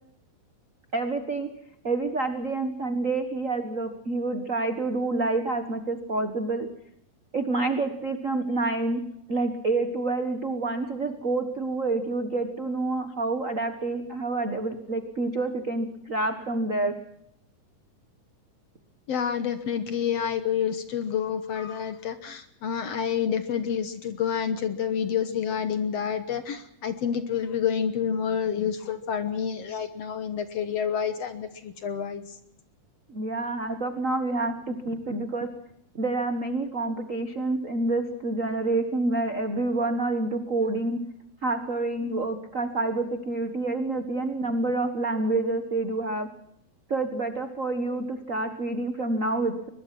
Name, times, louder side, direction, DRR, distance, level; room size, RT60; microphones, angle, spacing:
voice 1, 0.9-1.5 1.8-6.7 7.3-9.0 9.3-16.9 33.1-35.5 35.9-41.0 41.4-46.3 46.9-49.7, right 2 dB, 45° right, 7 dB, 1.0 m, -28 dB
voice 2, 19.1-32.2, left 8 dB, 60° left, 10 dB, 1.9 m, -28 dB
23.0 x 21.0 x 6.0 m, 0.76 s
omnidirectional pair, 3.9 m